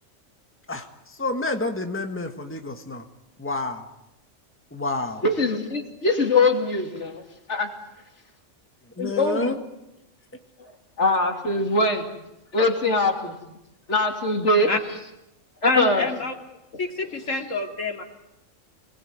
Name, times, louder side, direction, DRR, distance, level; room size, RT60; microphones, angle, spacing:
voice 1, 0.7-3.0 3.4-3.9 4.7-5.2 9.0-9.6, left 2 dB, 10° left, 4 dB, 1.8 m, -29 dB
voice 2, 5.2-7.2 7.5-7.7 9.0-9.5 11.0-12.1 12.5-13.4 13.9-14.7 15.6-16.1, left 2 dB, 65° left, 4 dB, 3.2 m, -22 dB
voice 3, 15.6-16.3 16.8-18.0, left 3 dB, 85° left, 3 dB, 2.9 m, -26 dB
26.0 x 20.0 x 9.5 m, 0.90 s
omnidirectional pair, 1.3 m